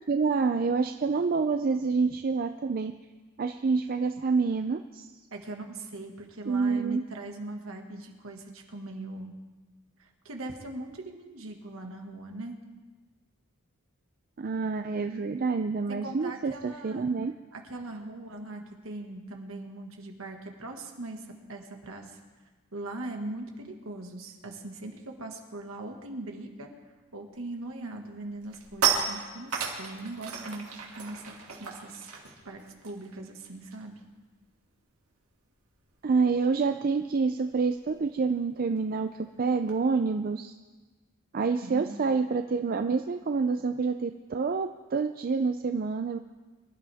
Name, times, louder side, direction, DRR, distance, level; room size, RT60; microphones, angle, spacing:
voice 1, 0.1-2.9 3.4-5.1 6.5-7.0 14.4-17.3 36.0-40.5 41.3-46.2, right 4 dB, 40° right, 7 dB, 0.4 m, -27 dB
voice 2, 5.3-9.3 10.0-12.6 15.9-17.1 17.5-22.2 22.7-26.7 27.1-31.2 31.6-32.1 32.4-33.9 41.6-42.0, right 2 dB, 65° right, 3 dB, 1.8 m, -40 dB
sound 1, 27.4-27.7 28.1-34.0 34.3-34.5 34.8-39.8, right 6 dB, 85° right, 2.3 m, -35 dB
24.0 x 12.0 x 3.5 m, 1.3 s
head